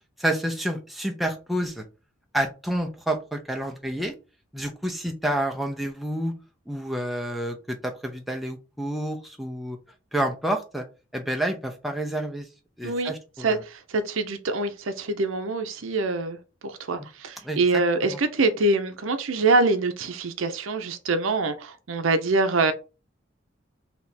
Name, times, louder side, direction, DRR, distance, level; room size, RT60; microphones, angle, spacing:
voice 1, 0.2-1.8 2.3-4.1 4.5-6.3 6.7-9.8 10.1-10.8 11.1-12.5 12.8-13.6 17.4-17.8 18.1-18.2, right 1 dB, ahead, 0.5 m, -29 dB
voice 2, 13.4-16.4 16.6-22.7, right 3 dB, 85° right, 0.6 m, -24 dB
3.4 x 2.9 x 4.1 m
head